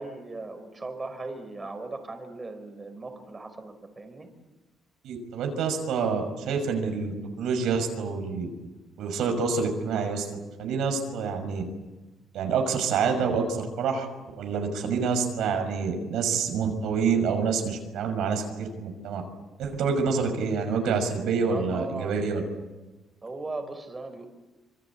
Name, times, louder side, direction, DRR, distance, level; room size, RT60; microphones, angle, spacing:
voice 1, 0.0-4.3 21.5-22.2 23.2-24.3, right 3 dB, 25° right, 6 dB, 4.7 m, -38 dB
voice 2, 5.0-8.5 9.0-10.3 10.6-11.6 12.3-14.1 14.4-19.2 19.6-22.4, right 5 dB, 85° right, 5 dB, 6.0 m, -27 dB
26.5 x 24.5 x 8.5 m, 1.1 s
cardioid pair, 90°, 0 cm